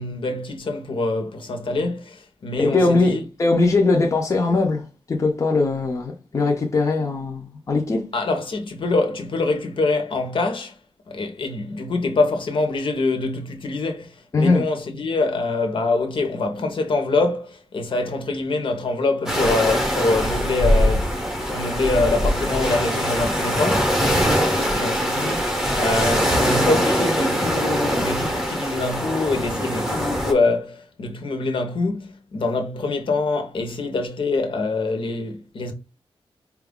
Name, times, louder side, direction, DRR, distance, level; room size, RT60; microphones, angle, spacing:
voice 1, 0.0-3.2 8.1-10.8 11.1-24.0 24.7-35.7, left 3 dB, 60° left, 0.8 m, -25 dB
voice 2, 2.6-8.1 14.3-14.7, left 3 dB, 35° left, 0.5 m, -20 dB
sound 1, 19.3-30.3, equal, 5° right, 0.7 m, -22 dB
4.4 x 2.3 x 3.5 m
wide cardioid pair, 170°, 10 cm